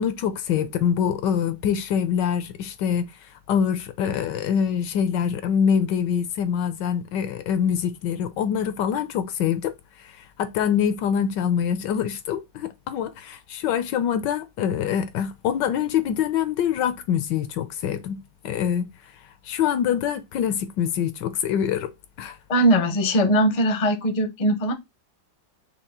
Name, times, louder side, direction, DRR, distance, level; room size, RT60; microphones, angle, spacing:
voice 1, 0.0-3.1 3.5-18.9 19.4-21.9 22.2-22.4, left 8 dB, 75° left, 1.2 m, -25 dB
voice 2, 22.5-24.7, right 1 dB, 35° left, 0.6 m, -20 dB
5.5 x 2.4 x 3.6 m
omnidirectional pair, 2.1 m